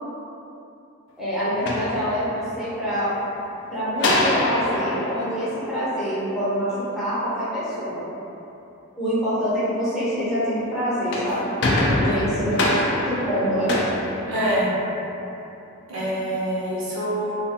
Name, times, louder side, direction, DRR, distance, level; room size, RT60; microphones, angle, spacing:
voice 1, 1.2-3.1 3.7-8.0 9.0-11.5 11.7-12.7 13.1-13.7, equal, ahead, -13 dB, 0.6 m, -26 dB
sound 1, 1.5-2.7 4.0-6.5 10.9-14.9, left 1 dB, 55° left, 0.3 m, -25 dB
voice 2, 14.2-14.7 15.9-17.4, right 1 dB, 65° right, -8 dB, 0.7 m, -25 dB
2.4 x 2.4 x 2.7 m, 2.8 s
head